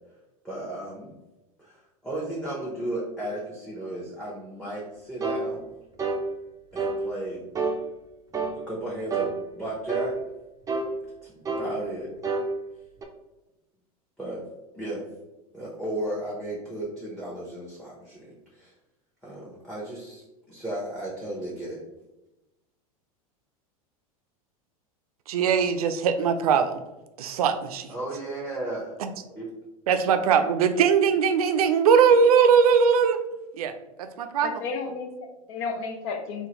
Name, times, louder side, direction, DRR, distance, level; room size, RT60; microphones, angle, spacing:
voice 1, 0.4-1.2 1.6-1.8 2.0-5.7 6.7-7.4 8.7-10.2 11.3-12.1 14.2-14.4 14.7-15.0 15.5-18.7 19.2-20.2 20.5-21.8 27.9-29.0 29.3-29.5, right 1 dB, ahead, -6 dB, 0.9 m, -34 dB
sound 1, 5.2-5.5 6.0-6.2 6.8-7.0 7.6-7.8 8.3-8.6 9.1-9.3 9.9-10.1 10.7-10.9 11.5-11.7 12.2-12.5 13.0-13.1, right 4 dB, 20° right, 0.5 m, -27 dB
voice 2, 25.3-26.8 27.2-27.9 29.0-29.1 29.9-33.2 33.5-33.7 34.0-34.6, right 6 dB, 75° right, 8 dB, 0.4 m, -21 dB
voice 3, 34.4-36.5, left 4 dB, 55° left, 5 dB, 0.6 m, -33 dB
3.7 x 2.2 x 2.9 m, 1.0 s
hypercardioid pair, 90°, 19 cm